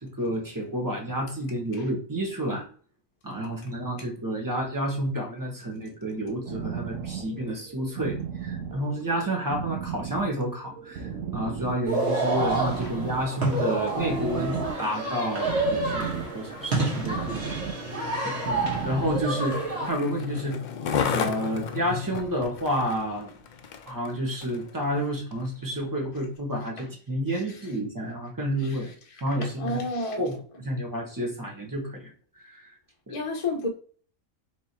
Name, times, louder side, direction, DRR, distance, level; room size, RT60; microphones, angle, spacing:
voice 1, 0.0-2.7 3.2-17.4 18.2-19.6 19.9-20.6 21.1-23.3 23.9-28.9 29.2-29.8 30.2-30.3 30.6-32.1 32.4-32.6, equal, 15° right, 0 dB, 1.1 m, -30 dB
sound 1, 6.2-19.8, right 8 dB, 75° right, 1.1 m, -37 dB
sound 2, 11.8-19.9, right 2 dB, 50° right, 1.6 m, -28 dB
Skateboard, 15.9-24.7 25.3-25.4, left 6 dB, 85° left, 0.4 m, -35 dB
voice 2, 29.4-30.3 33.1-33.7, left 2 dB, 30° left, 1 dB, 0.7 m, -30 dB
3.4 x 3.1 x 4.2 m, 0.44 s
omnidirectional pair, 1.4 m